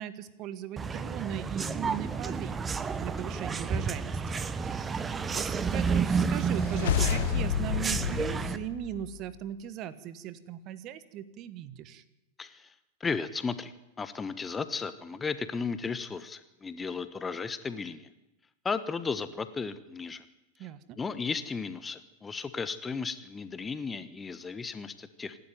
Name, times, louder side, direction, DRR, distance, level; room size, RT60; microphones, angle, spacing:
voice 1, 0.0-12.0 20.6-21.0, right 11 dB, 35° right, 15 dB, 1.4 m, -39 dB
sound 1, 0.8-8.6, right 5 dB, 15° right, 1.3 m, -31 dB
sound 2, 6.5-9.3, left 10 dB, 60° left, 1.1 m, -30 dB
voice 2, 12.4-12.7 13.0-13.7 14.0-18.1 18.6-20.2 21.0-25.4, left 5 dB, 15° left, 13 dB, 1.2 m, -35 dB
26.5 x 12.0 x 9.4 m, 0.93 s
figure-of-eight pair, 90°, 0 cm